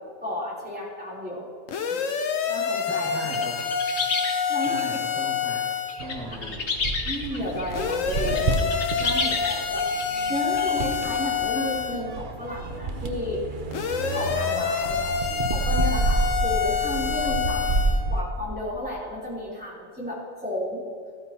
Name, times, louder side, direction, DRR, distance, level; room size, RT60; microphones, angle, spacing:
voice 1, 0.2-1.4 1.9-2.0 2.5-3.7 4.5-4.8 7.0-8.5 9.0-9.9 10.3-13.4 14.0-15.2 15.5-17.8 18.1-20.8, left 1 dB, 5° right, -7 dB, 3.3 m, -32 dB
sound 1, 1.7-6.0 7.7-12.0 13.7-18.0, left 6 dB, 80° left, 1.2 m, -27 dB
voice 2, 2.9-3.6 4.6-5.7 6.0-6.7, left 1 dB, 10° left, -8 dB, 2.1 m, -37 dB
sound 2, 3.3-5.0 5.9-10.7, left 4 dB, 60° left, 1.3 m, -31 dB
sound 3, 6.0-18.2, right 3 dB, 45° right, 0.9 m, -29 dB
14.0 x 13.5 x 2.9 m, 2.1 s
omnidirectional pair, 1.3 m